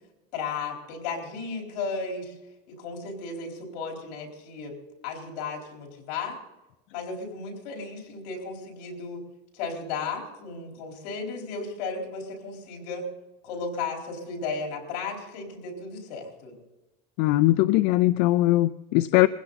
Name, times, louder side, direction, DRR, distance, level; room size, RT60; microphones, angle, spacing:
voice 1, 0.3-2.4 2.7-4.8 5.0-6.4 6.9-9.2 9.5-13.0 13.4-16.6, left 4 dB, 80° left, 4.1 m, -34 dB
voice 2, 17.2-19.3, left 17 dB, 55° left, 0.4 m, -20 dB
21.5 x 16.0 x 4.0 m
cardioid pair, 175°, 20 cm